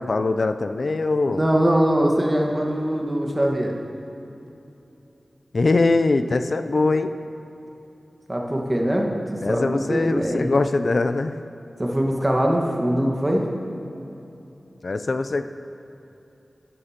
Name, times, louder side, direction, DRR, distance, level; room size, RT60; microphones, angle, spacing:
voice 1, 0.1-1.4 5.5-7.1 9.4-11.3 14.8-15.4, left 3 dB, 65° left, 9 dB, 0.3 m, -22 dB
voice 2, 1.3-3.7 8.3-10.5 11.8-13.4, right 1 dB, 25° right, 0 dB, 1.3 m, -22 dB
12.0 x 9.8 x 2.8 m, 2.9 s
cardioid pair, 50°, 0 cm